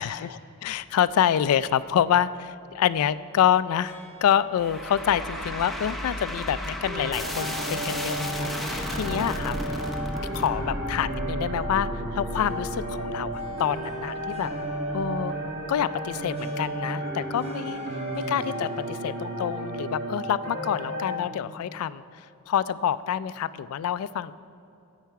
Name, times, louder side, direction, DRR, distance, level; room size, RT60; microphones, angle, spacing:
voice 1, 0.0-9.8 10.3-14.5 14.9-15.3 15.7-17.8 18.1-22.0 22.5-24.3, left 9 dB, 75° left, 16 dB, 0.3 m, -27 dB
Harp, 3.8-20.6, right 2 dB, 30° right, 1.1 m, -49 dB
sound 1, 4.6-15.8, left 1 dB, ahead, 0.7 m, -35 dB
sound 2, 6.8-21.2, right 1 dB, 50° right, 1.4 m, -33 dB
10.5 x 8.1 x 4.6 m, 2.7 s
head